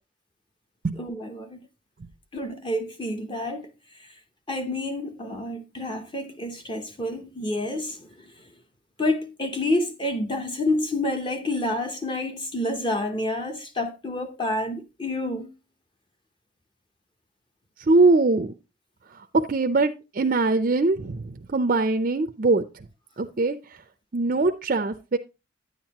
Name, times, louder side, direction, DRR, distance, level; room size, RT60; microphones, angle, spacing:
voice 1, 1.0-1.6 2.3-3.7 4.0-4.1 4.5-8.1 9.0-15.5, left 1 dB, 25° left, 0.8 m, -28 dB
voice 2, 17.8-18.5 19.1-22.9 23.2-23.8 24.1-25.2, right 3 dB, 40° right, 0.5 m, -22 dB
9.8 x 8.9 x 2.9 m
head